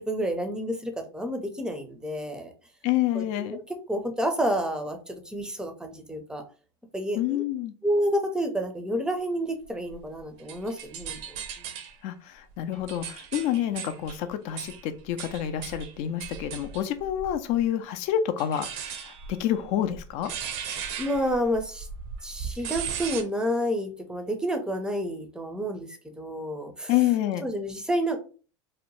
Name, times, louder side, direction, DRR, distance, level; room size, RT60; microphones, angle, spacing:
voice 1, 0.0-2.5 3.1-3.6 3.9-6.4 6.9-7.4 7.8-11.7 21.0-21.9 22.2-26.9 27.4-28.2, equal, 5° right, 5 dB, 0.5 m, -29 dB
voice 2, 2.8-3.6 7.1-7.7 12.0-20.3 26.9-27.5, left 11 dB, 55° left, 9 dB, 0.4 m, -28 dB
sound 1, 9.9-12.0 12.5-17.6 18.4-23.2, right 7 dB, 60° right, 0.6 m, -38 dB
2.8 x 2.1 x 3.0 m, 0.37 s
hypercardioid pair, 110°, 15 cm